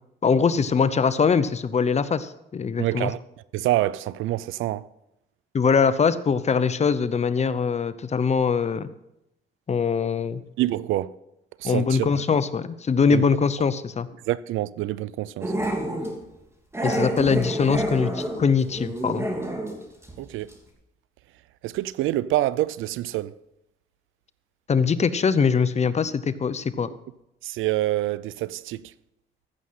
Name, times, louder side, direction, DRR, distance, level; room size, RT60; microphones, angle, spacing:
voice 1, 0.2-3.1 5.5-8.9 9.7-10.4 11.6-14.1 16.8-19.3 24.7-26.9, left 5 dB, 35° left, 0.7 m, -22 dB
voice 2, 2.8-3.2 3.5-4.9 10.6-11.1 11.6-12.1 13.1-13.3 14.3-15.5 20.2-20.5 21.6-23.4 26.9-27.0 27.4-28.9, right 15 dB, 85° right, 0.5 m, -26 dB
Growling, 15.4-16.1 16.7-19.8 20.0-20.2 20.5-20.6, right 1 dB, 15° right, 2.9 m, -28 dB
15.0 x 6.4 x 5.7 m
cardioid pair, 90°, 20 cm